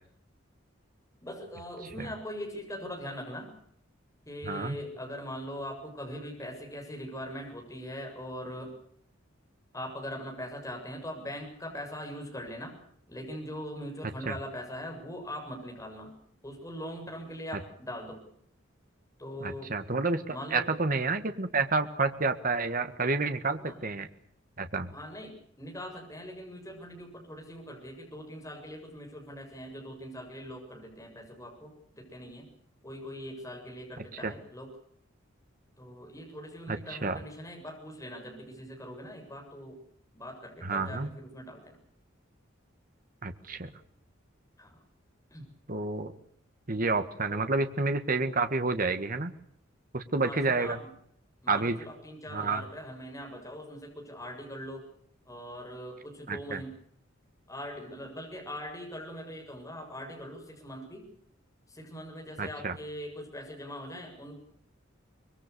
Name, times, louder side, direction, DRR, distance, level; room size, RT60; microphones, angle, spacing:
voice 1, 1.2-3.5 4.3-8.7 9.7-12.7 13.1-16.1 16.4-18.2 19.2-19.7 20.3-20.7 23.6-23.8 24.9-32.5 32.8-34.7 35.8-39.8 40.1-41.8 44.6-44.8 45.3-45.5 47.3-47.5 50.2-50.9 51.4-54.8 55.3-56.8 57.5-61.1 61.7-64.4, equal, 15° left, 2 dB, 7.6 m, -41 dB
voice 2, 4.4-4.8 14.2-14.3 19.4-24.1 24.6-24.9 34.2-34.3 36.7-37.2 40.6-41.1 43.2-43.7 45.7-46.1 46.7-49.3 49.9-50.8 51.5-51.8 52.3-52.6 56.3-56.6 62.4-62.7, right 3 dB, 45° right, 8 dB, 1.7 m, -29 dB
25.0 x 22.0 x 6.9 m, 0.67 s
head